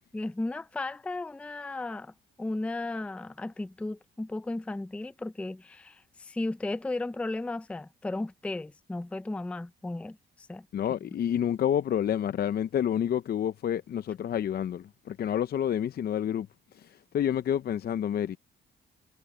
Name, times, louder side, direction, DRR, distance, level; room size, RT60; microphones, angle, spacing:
voice 1, 0.1-10.7, left 2 dB, 5° left, 0.4 m, -35 dB
voice 2, 10.7-16.5 16.7-18.4, left 9 dB, 50° left, 0.6 m, -29 dB
cardioid pair, 90°, 20 cm